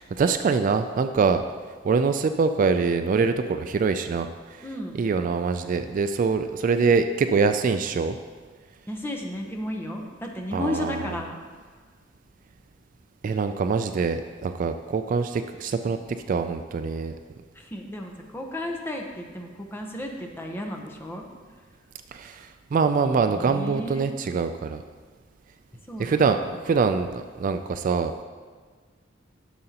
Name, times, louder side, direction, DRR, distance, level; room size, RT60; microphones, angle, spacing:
voice 1, 0.0-1.4 1.8-4.6 5.0-8.2 10.5-11.1 13.2-16.0 16.3-17.2 22.1-24.8 26.0-28.1, right 5 dB, 45° right, 9 dB, 0.3 m, -24 dB
voice 2, 4.6-5.1 8.9-11.4 13.3-13.4 17.5-21.3 23.0-24.1 25.9-26.5, left 1 dB, 10° left, 1 dB, 0.8 m, -34 dB
11.0 x 6.6 x 2.9 m, 1.6 s
head